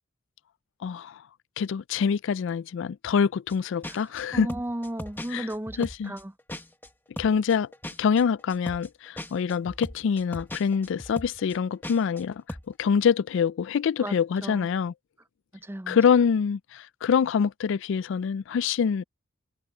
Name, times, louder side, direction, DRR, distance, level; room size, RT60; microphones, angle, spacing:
voice 1, 0.8-1.2 1.6-4.5 5.3-5.5 5.8-6.1 7.2-7.7 8.0-14.9 15.9-19.0, left 6 dB, 60° left, 0.3 m, -25 dB
sound 1, 3.5-3.6 3.8-6.9 7.2-12.2 12.5-12.7, left 1 dB, 10° left, 1.4 m, -38 dB
voice 2, 4.3-5.8 6.0-6.3 9.2-9.3 14.0-14.7 15.5-16.0, right 1 dB, 10° right, 0.5 m, -35 dB
head